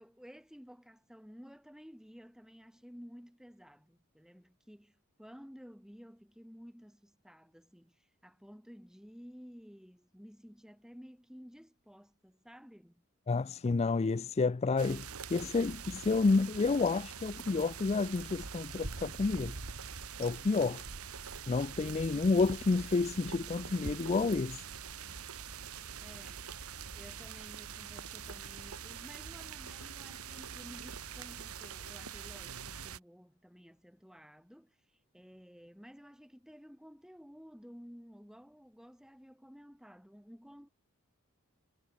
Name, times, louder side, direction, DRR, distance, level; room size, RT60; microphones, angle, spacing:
voice 1, 0.0-13.0 25.0-25.2 26.0-26.5 26.9-40.7, equal, 5° right, 7.7 m, -54 dB
voice 2, 13.3-15.1 15.3-19.5 20.2-20.8 21.5-24.6, left 3 dB, 30° left, 0.4 m, -30 dB
sound 1, 14.8-33.0, right 6 dB, 85° right, 1.9 m, -44 dB
head